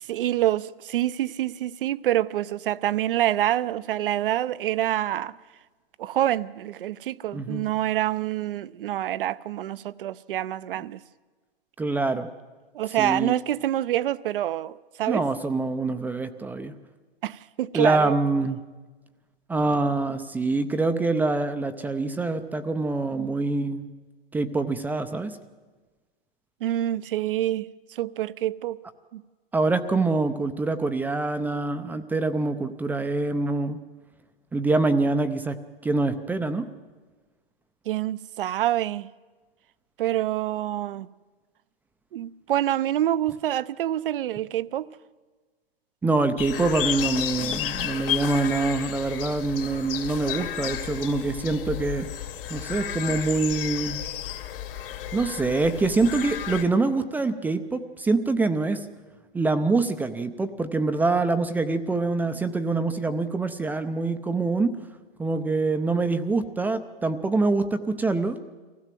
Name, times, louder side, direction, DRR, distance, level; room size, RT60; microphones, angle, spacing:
voice 1, 0.0-5.4 6.0-11.0 12.7-15.2 17.2-18.2 26.6-28.8 29.1-29.2 37.9-39.1 40.0-41.1 42.1-44.9 47.4-47.5 47.8-47.9, right 13 dB, 60° right, 0.7 m, -26 dB
voice 2, 7.3-7.7 11.8-12.3 13.0-13.3 15.1-16.7 17.7-18.6 19.5-23.9 24.3-25.4 29.5-33.8 34.5-35.5 35.8-36.7 46.0-52.1 52.5-54.0 55.1-58.8 59.3-64.7 65.2-68.4, right 3 dB, 5° right, 0.5 m, -25 dB
sound 1, 46.4-56.6, left 11 dB, 65° left, 2.4 m, -32 dB
24.0 x 16.0 x 7.6 m
hypercardioid pair, 135°, 31 cm